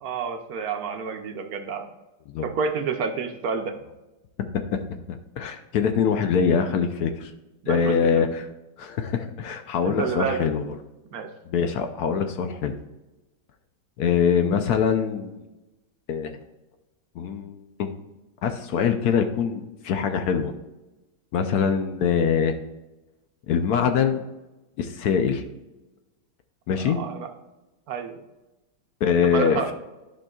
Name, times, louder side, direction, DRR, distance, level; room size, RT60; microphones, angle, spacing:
voice 1, 0.0-1.9 2.4-3.7 7.6-8.3 9.8-10.5 11.1-11.3 26.8-27.3 27.9-28.2 29.2-29.7, right 5 dB, 65° right, 5 dB, 1.1 m, -29 dB
voice 2, 5.1-7.3 7.7-8.5 8.8-10.7 11.5-12.7 14.0-15.4 16.1-16.4 17.2-17.9 18.4-20.5 21.3-22.6 23.5-24.2 24.8-25.4 26.7-27.0 29.0-29.7, left 7 dB, 70° left, 7 dB, 1.1 m, -23 dB
11.5 x 5.3 x 2.3 m, 1.0 s
omnidirectional pair, 1.9 m